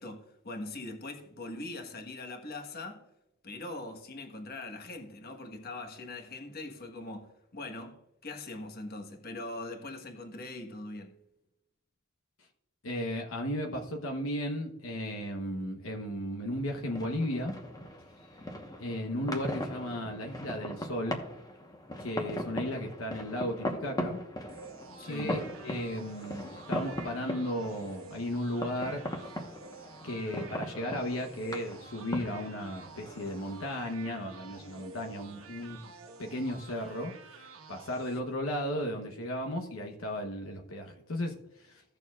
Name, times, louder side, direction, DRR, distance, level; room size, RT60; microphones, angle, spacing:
voice 1, 0.0-3.1 3.4-11.2 25.0-25.4, left 2 dB, 50° left, 1.3 m, -42 dB
voice 2, 12.8-17.6 18.8-21.2 22.0-24.2 25.0-29.0 30.0-35.9 36.2-41.8, equal, 70° left, 1.0 m, -35 dB
sound 1, 16.5-35.8, left 1 dB, 20° left, 1.1 m, -40 dB
sound 2, 24.5-38.2, right 4 dB, 80° right, 1.4 m, -50 dB
16.0 x 6.8 x 2.4 m
head